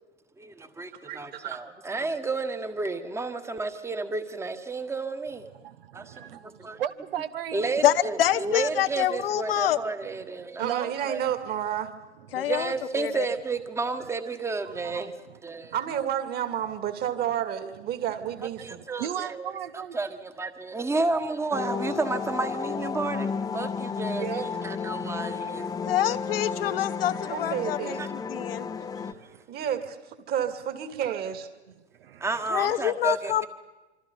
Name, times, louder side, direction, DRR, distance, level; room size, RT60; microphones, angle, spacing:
voice 1, 0.4-5.5 5.9-6.0 6.6-6.8 7.5-10.7 11.1-11.2 12.3-15.7 18.6-19.6 19.9-25.7 28.0-28.1 32.2-33.5, right 3 dB, 10° right, 1.6 m, -31 dB
voice 2, 1.0-1.6 10.6-11.9 15.7-18.8 27.3-28.0 29.5-30.0 30.3-31.5, right 10 dB, 25° right, 2.3 m, -30 dB
voice 3, 5.5-6.4 6.8-7.8 8.5-8.6 9.7-9.8 10.1-10.3 10.6-10.9 12.3-12.5 14.0-14.1 14.6-15.4 18.3-20.0 21.0-21.5 23.9-26.2 27.3-27.6 28.7-29.7 31.7-32.3 32.7-32.8, right 10 dB, 55° right, 1.2 m, -38 dB
voice 4, 7.8-9.9 12.3-13.3 25.9-28.0 28.3-28.7 32.5-33.5, left 12 dB, 55° left, 1.1 m, -26 dB
sound 1, 21.5-29.1, left 6 dB, 10° left, 1.0 m, -32 dB
26.5 x 25.5 x 5.5 m
figure-of-eight pair, 105°, 34 cm